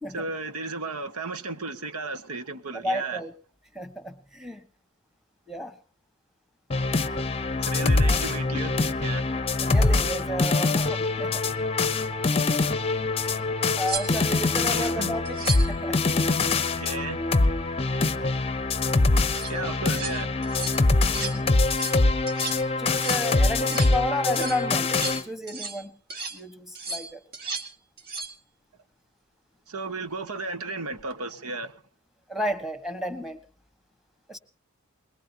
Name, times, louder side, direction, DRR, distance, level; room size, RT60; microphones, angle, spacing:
voice 1, 0.1-3.2 7.6-9.3 14.7-15.2 16.6-17.2 19.5-20.3 29.7-31.7, right 3 dB, 80° right, 1.5 m, -34 dB
voice 2, 2.7-3.3 3.7-4.6 5.5-5.7 8.1-8.2 9.6-11.4 13.8-16.0 21.0-21.5 22.8-25.9 26.3-27.2 32.3-33.4 34.3-34.4, equal, ahead, 1.5 m, -32 dB
sound 1, 6.7-25.2, left 3 dB, 25° left, 0.7 m, -24 dB
sound 2, 13.2-13.3 13.8-14.4 15.3-15.8 19.2-19.5 19.9-20.2 20.4-20.8 21.1-21.4 21.6-22.0 22.3-22.7 22.9-23.3 23.6-23.9 24.3-25.8 26.1-26.4 26.8-27.7 28.0-28.4 30.9-31.1, right 4 dB, 40° right, 2.5 m, -35 dB
22.5 x 21.5 x 2.9 m
head